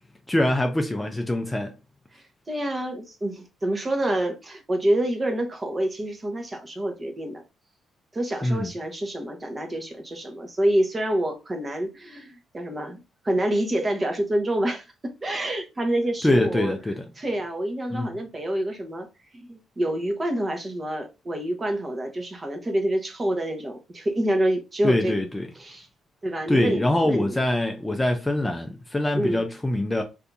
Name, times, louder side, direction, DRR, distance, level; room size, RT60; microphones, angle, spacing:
voice 1, 0.3-1.7 8.4-8.7 16.2-17.0 17.9-18.1 24.8-25.5 26.5-30.0, left 1 dB, 15° left, 0.5 m, -24 dB
voice 2, 2.5-7.4 8.1-13.0 13.2-16.8 17.2-19.1 19.3-25.1 25.5-25.9 26.2-27.4 29.2-29.4, right 1 dB, 25° right, 0.9 m, -27 dB
2.7 x 2.6 x 3.4 m
cardioid pair, 90°, 0 cm